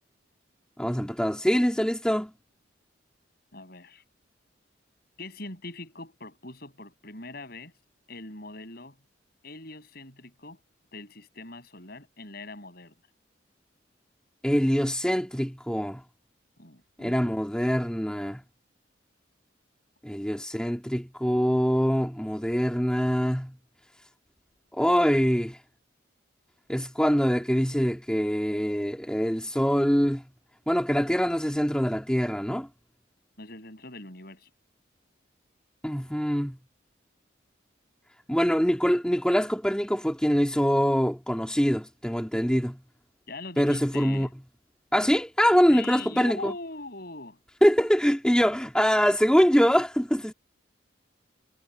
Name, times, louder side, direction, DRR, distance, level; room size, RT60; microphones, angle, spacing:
voice 1, 0.8-2.3 14.4-16.0 17.0-18.4 20.0-23.5 24.7-25.6 26.7-30.2 30.7-32.7 35.8-36.6 38.3-42.8 43.6-44.3 44.9-46.5 47.6-50.3, equal, 5° left, 2.9 m, -24 dB
voice 2, 3.5-4.0 5.2-7.7 8.1-9.0 9.4-10.6 10.9-12.9 16.6-17.2 33.4-34.5 43.3-44.3 45.7-47.4, left 2 dB, 55° left, 7.8 m, -42 dB
head